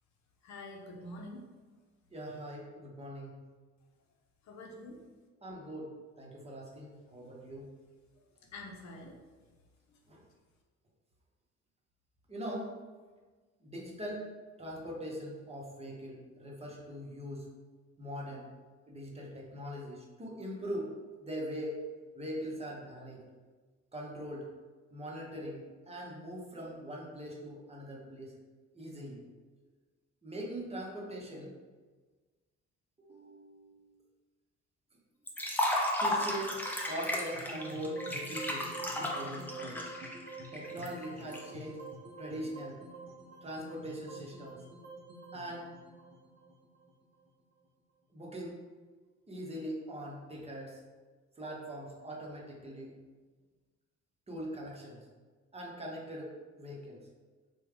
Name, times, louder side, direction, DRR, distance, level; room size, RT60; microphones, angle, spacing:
voice 1, 0.4-1.4 4.5-5.0 8.5-9.1 9.9-10.0, left 1 dB, 65° left, 1 dB, 0.6 m, -46 dB
voice 2, 2.1-3.4 5.4-7.7 10.1-10.2 12.3-12.7 13.6-14.3 14.6-17.5 18.0-18.5 18.9-20.9 21.2-21.8 22.1-23.2 23.9-24.5 24.9-28.3 28.7-29.2 30.2-31.5 33.0-34.0 36.0-38.7 39.0-39.8 40.5-41.8 42.2-42.8 43.4-44.6 45.3-45.7 48.1-48.6 49.3-50.8 51.4-53.0 54.3-55.0 55.5-57.0, equal, 20° right, -3 dB, 0.8 m, -41 dB
Liquid, 35.3-41.4, left 1 dB, 5° left, 0.5 m, -34 dB
sound 1, 37.3-47.5, right 2 dB, 60° right, 0.7 m, -47 dB
3.2 x 2.2 x 3.4 m, 1.4 s
cardioid pair, 90°, 30 cm